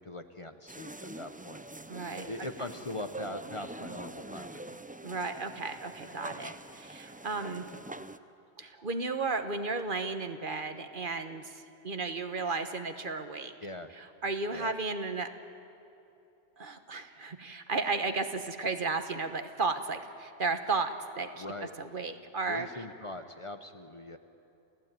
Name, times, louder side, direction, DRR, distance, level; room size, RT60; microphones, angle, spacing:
voice 1, 0.0-1.6 2.3-4.8 13.6-13.9 14.5-14.7 21.4-21.7 22.5-24.2, left 2 dB, 30° left, 8 dB, 1.0 m, -41 dB
sound 1, 0.7-8.2, right 2 dB, 10° right, 0.4 m, -45 dB
voice 2, 1.9-2.3 5.0-7.7 8.6-13.5 13.9-15.3 16.6-21.4 21.8-22.7, right 3 dB, 55° right, 8 dB, 1.3 m, -34 dB
29.5 x 15.5 x 9.1 m, 2.9 s
omnidirectional pair, 1.1 m